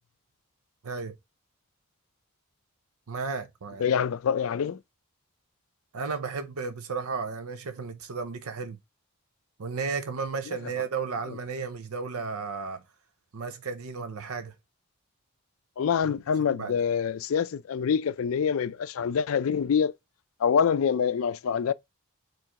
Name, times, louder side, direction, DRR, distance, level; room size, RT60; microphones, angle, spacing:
voice 1, 0.8-1.2 3.1-3.8 5.9-8.8 9.6-12.8 13.3-14.5 16.6-16.8, right 5 dB, 80° right, 0.6 m, -33 dB
voice 2, 3.8-4.8 10.5-10.6 15.8-19.9 20.4-21.7, left 7 dB, 70° left, 0.4 m, -25 dB
4.6 x 3.1 x 3.7 m
head